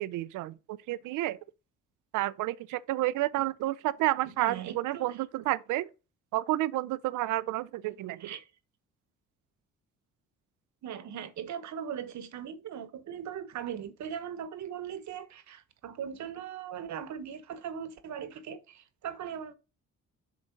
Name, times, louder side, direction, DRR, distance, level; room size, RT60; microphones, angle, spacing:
voice 1, 0.0-1.4 2.1-5.9 6.3-8.3, right 16 dB, 85° right, 0.5 m, -30 dB
voice 2, 4.4-5.2 8.2-8.4 10.8-19.5, right 8 dB, 65° right, 1.1 m, -39 dB
7.1 x 3.8 x 5.2 m
cardioid pair, 90°, 30 cm